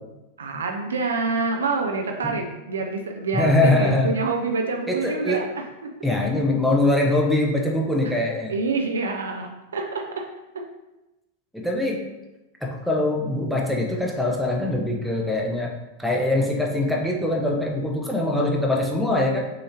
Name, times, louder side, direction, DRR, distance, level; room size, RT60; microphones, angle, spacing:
voice 1, 0.4-5.9 8.0-8.2 8.5-10.3 10.5-10.7, right 3 dB, 65° right, 2 dB, 0.5 m, -27 dB
voice 2, 3.3-4.1 4.9-5.4 6.0-8.6 11.5-12.0 12.6-15.7 16.0-19.4, left 1 dB, ahead, -2 dB, 0.7 m, -22 dB
6.3 x 2.8 x 2.8 m, 0.99 s
figure-of-eight pair, 90°, 0 cm